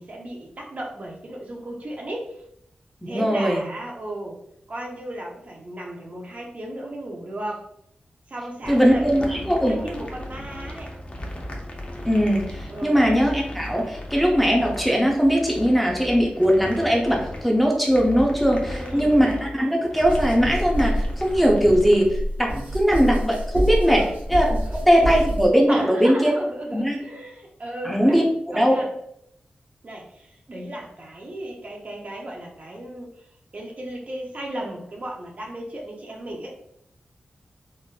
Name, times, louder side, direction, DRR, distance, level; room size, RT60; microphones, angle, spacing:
voice 1, 0.0-2.4 3.0-4.4 4.7-7.7 8.3-10.9 12.7-13.0 18.6-19.2 23.8-24.1 24.6-24.8 25.7-28.9 29.8-33.3 33.5-36.5, right 1 dB, 50° right, 0 dB, 0.7 m, -35 dB
voice 2, 3.0-3.6 8.7-9.8 12.0-26.3 26.7-27.0 27.8-28.2 28.5-28.9, equal, ahead, -1 dB, 0.6 m, -20 dB
sound 1, 8.6-22.0, left 1 dB, 40° left, 0.7 m, -36 dB
sound 2, 20.0-25.5, equal, 65° right, 1.5 m, -27 dB
3.8 x 2.5 x 2.4 m, 0.73 s
wide cardioid pair, 85°, 3 cm